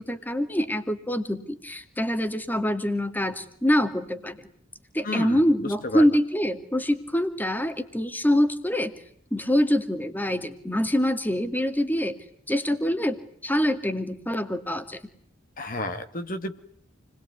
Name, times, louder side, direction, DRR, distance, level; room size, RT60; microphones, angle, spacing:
voice 1, 0.0-4.4 4.9-8.9 9.3-12.2 12.5-13.2 13.4-15.0, equal, 10° left, 8 dB, 2.3 m, -25 dB
voice 2, 5.0-6.1 15.6-16.6, left 2 dB, 45° left, 7 dB, 2.2 m, -32 dB
29.0 x 21.5 x 9.6 m, 0.63 s
head